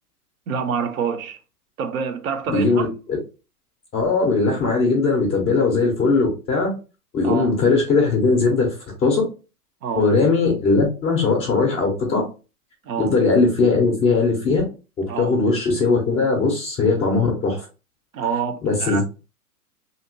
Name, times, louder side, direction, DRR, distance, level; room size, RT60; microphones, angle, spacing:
voice 1, 0.5-1.4 1.8-2.9 7.2-7.5 9.8-10.1 12.8-13.2 15.1-15.4 18.1-19.0, right 6 dB, 65° right, 0.7 m, -26 dB
voice 2, 2.5-2.9 3.9-6.7 7.1-8.7 9.0-9.2 10.0-12.2 13.0-14.6 15.0-17.6 18.6-19.0, left 3 dB, 15° left, 0.5 m, -19 dB
2.8 x 2.8 x 2.6 m
hypercardioid pair, 130°, 46 cm